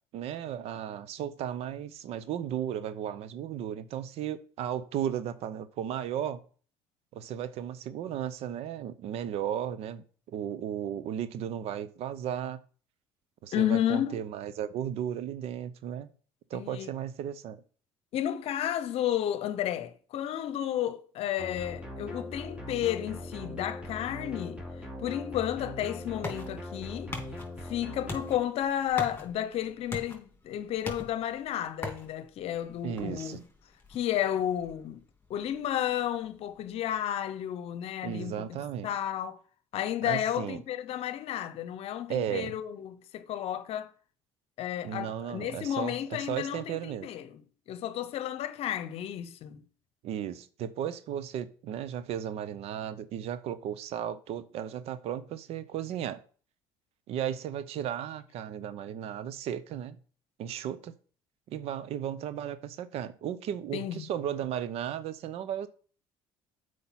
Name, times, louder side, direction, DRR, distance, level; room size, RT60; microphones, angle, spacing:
voice 1, 0.1-6.4 7.1-12.6 13.4-16.1 16.5-17.6 32.8-33.4 38.0-38.9 40.1-40.6 42.1-42.6 44.8-47.1 50.0-56.2 57.1-60.0 60.4-60.9 61.5-65.7, right 10 dB, 65° right, 0.8 m, -35 dB
voice 2, 13.5-14.2 16.5-16.9 18.1-24.6 25.0-27.1 27.6-33.4 33.9-35.0 35.3-39.4 39.7-43.9 44.6-47.4 47.7-49.6 63.7-64.0, left 11 dB, 60° left, 0.8 m, -32 dB
sound 1, 21.4-28.4, left 1 dB, 10° right, 2.8 m, -41 dB
sound 2, 25.7-37.0, left 2 dB, 15° left, 3.2 m, -44 dB
8.0 x 5.0 x 5.8 m
supercardioid pair, 75°, 11 cm